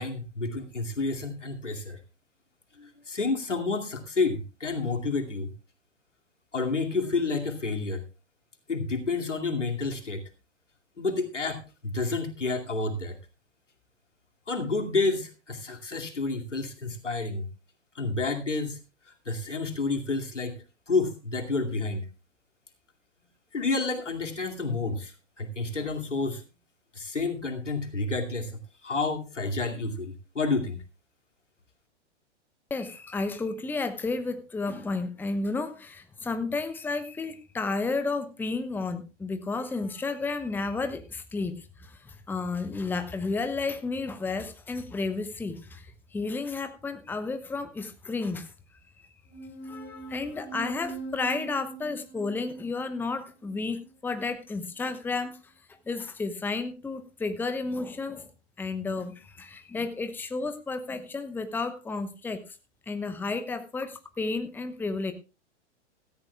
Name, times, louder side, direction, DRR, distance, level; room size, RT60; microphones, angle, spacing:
voice 1, 0.0-2.0 2.8-5.5 6.5-8.0 8.7-10.2 11.0-13.2 14.5-17.5 17.9-18.8 19.3-22.1 23.5-26.4 26.9-30.8, left 3 dB, 80° left, 3 dB, 2.5 m, -30 dB
voice 2, 32.7-48.5 49.6-55.5 55.9-58.3 58.6-62.6 62.9-65.1, left 3 dB, 5° left, 9 dB, 0.9 m, -32 dB
sound 1, 49.3-54.3, right 4 dB, 30° left, 4.0 m, -42 dB
17.0 x 14.0 x 2.3 m, 0.32 s
figure-of-eight pair, 105°, 36 cm